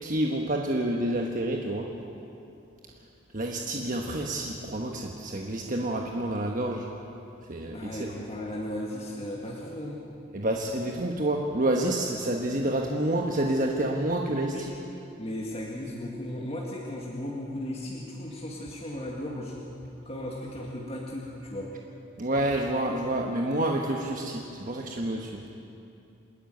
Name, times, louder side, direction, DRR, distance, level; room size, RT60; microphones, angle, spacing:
voice 1, 0.0-1.9 3.3-6.9 7.5-8.1 10.3-14.7 22.2-25.4, right 1 dB, 40° right, 1 dB, 1.2 m, -28 dB
voice 2, 7.7-10.0 14.5-14.7 15.2-19.5 20.1-21.7, left 1 dB, 30° left, -3 dB, 2.0 m, -36 dB
27.0 x 10.5 x 9.3 m, 2.7 s
head